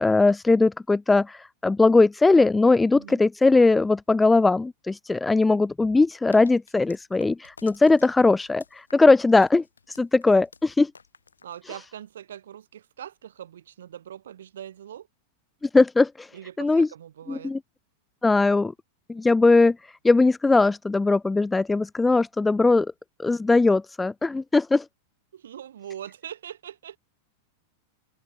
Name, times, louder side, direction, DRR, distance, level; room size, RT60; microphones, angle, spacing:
voice 1, 0.0-10.9 15.6-16.3 16.6-16.9 17.3-17.6 18.2-18.7 19.1-22.9 23.2-24.9, left 3 dB, 10° left, 0.3 m, -20 dB
sound 1, 6.3-12.1, left 5 dB, 75° left, 5.0 m, -52 dB
voice 2, 11.4-15.1 16.3-17.5 25.3-27.0, right 10 dB, 65° right, 5.0 m, -41 dB
open air
figure-of-eight pair, 90°, 0 cm